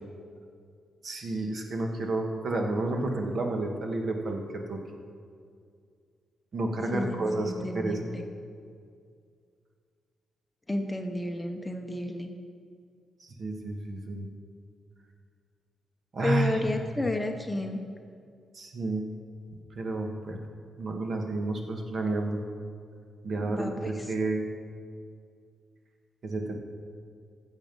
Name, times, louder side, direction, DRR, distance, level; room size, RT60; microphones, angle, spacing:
voice 1, 1.0-4.8 6.5-8.1 13.2-14.3 16.1-17.1 18.5-19.0 19.7-20.4 20.8-22.4 23.2-24.4 26.2-26.6, right 2 dB, 50° right, 3 dB, 1.5 m, -31 dB
voice 2, 6.9-8.2 10.7-12.3 16.2-17.8 23.4-24.0, left 2 dB, 15° left, 4 dB, 0.8 m, -32 dB
15.0 x 7.3 x 5.3 m, 2.2 s
cardioid pair, 120°, 0 cm